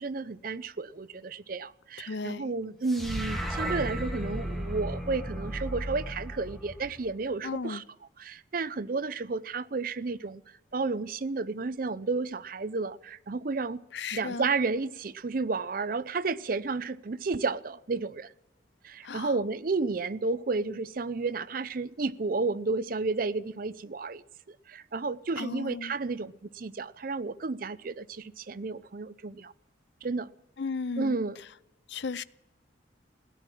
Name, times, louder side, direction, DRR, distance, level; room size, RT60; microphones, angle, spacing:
voice 1, 0.0-7.8 8.2-10.4 10.7-13.8 14.1-18.3 18.8-24.2 24.7-29.5 30.0-30.3 31.0-31.4, right 3 dB, 50° right, 0.5 m, -32 dB
voice 2, 2.1-2.5 7.4-7.8 13.9-14.5 19.0-19.3 25.4-26.0 30.6-31.2 31.9-32.2, left 4 dB, 70° left, 0.6 m, -35 dB
sound 1, 2.9-7.3, right 1 dB, ahead, 1.7 m, -34 dB
17.5 x 11.0 x 7.6 m
head